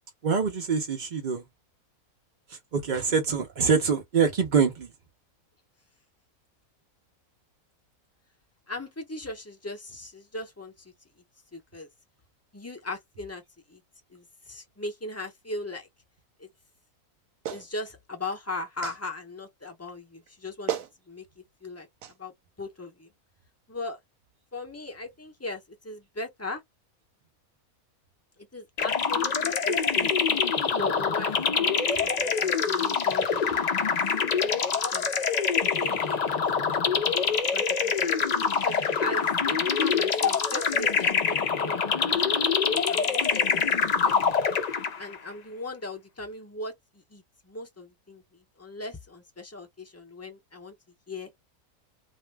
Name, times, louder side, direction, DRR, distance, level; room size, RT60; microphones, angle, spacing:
voice 1, 0.2-1.4 2.5-4.9, right 6 dB, 55° right, 0.5 m, -25 dB
voice 2, 8.7-10.9 11.5-11.9 12.5-13.4 13.7-13.8 14.1-15.9 16.4-16.5 17.5-20.7 21.1-21.9 22.2-22.3 22.6-23.1 23.7-24.0 24.5-26.6 28.5-30.1 30.7-34.0 34.9-35.1 35.8-36.4 36.7-37.0 37.3-38.1 38.6-42.4 42.7-44.3 45.0-50.7 51.1-51.3, left 2 dB, 15° left, 0.5 m, -38 dB
Clapping, 17.4-17.7 18.8-19.0 20.3-20.4 20.7-20.9 22.0-22.1, right 9 dB, 75° right, 1.1 m, -32 dB
sound 1, 28.8-45.2, left 6 dB, 70° left, 0.4 m, -25 dB
2.6 x 2.1 x 3.3 m
omnidirectional pair, 1.5 m